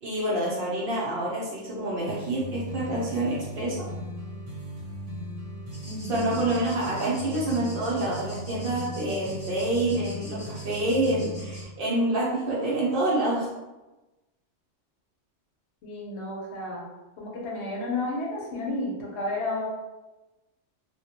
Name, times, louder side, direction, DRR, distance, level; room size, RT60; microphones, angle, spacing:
voice 1, 0.0-3.9 6.1-13.5, right 1 dB, 55° right, -5 dB, 0.7 m, -27 dB
sound 1, 2.1-11.6, equal, 80° right, 1.0 m, -37 dB
sound 2, 5.7-11.6, left 1 dB, 10° left, 0.4 m, -46 dB
voice 2, 5.8-6.4 15.8-16.8 17.2-19.6, left 2 dB, 70° left, -3 dB, 0.9 m, -32 dB
2.2 x 2.1 x 2.8 m, 1.1 s
omnidirectional pair, 1.2 m